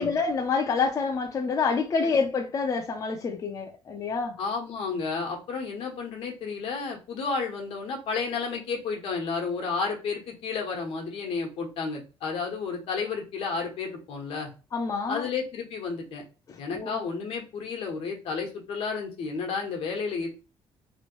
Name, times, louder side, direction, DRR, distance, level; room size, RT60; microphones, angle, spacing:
voice 1, 0.0-4.4 14.7-15.3 16.5-17.0, left 5 dB, 35° left, 0.5 m, -27 dB
voice 2, 4.4-14.5 15.1-16.2 16.6-20.3, left 5 dB, 80° left, 1.0 m, -32 dB
3.0 x 2.5 x 3.0 m
cardioid pair, 140°, 10 cm